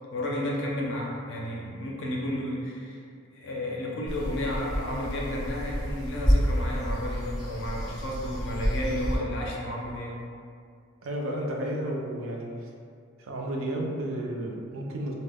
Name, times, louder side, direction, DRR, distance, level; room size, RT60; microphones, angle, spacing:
voice 1, 0.1-3.0 3.3-10.2, left 1 dB, 55° left, -3 dB, 0.4 m, -32 dB
sound 1, 4.0-9.2, equal, ahead, 0.5 m, -29 dB
voice 2, 11.0-12.7 13.2-15.1, right 1 dB, 65° right, -1 dB, 0.4 m, -32 dB
2.1 x 2.0 x 3.4 m, 2.3 s
head